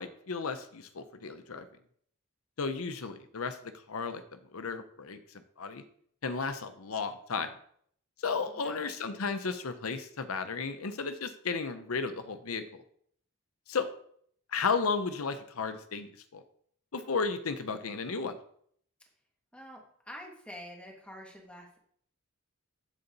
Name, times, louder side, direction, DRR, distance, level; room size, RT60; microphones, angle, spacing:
voice 1, 0.0-1.7 2.6-3.6 3.9-4.2 4.5-5.2 5.6-5.8 6.2-7.5 8.2-12.8 13.7-13.9 14.5-16.4 16.9-18.4, left 5 dB, 85° left, 9 dB, 0.7 m, -34 dB
voice 2, 8.5-8.9 19.5-21.8, equal, 5° left, -1 dB, 2.1 m, -47 dB
8.2 x 6.7 x 4.0 m, 0.63 s
head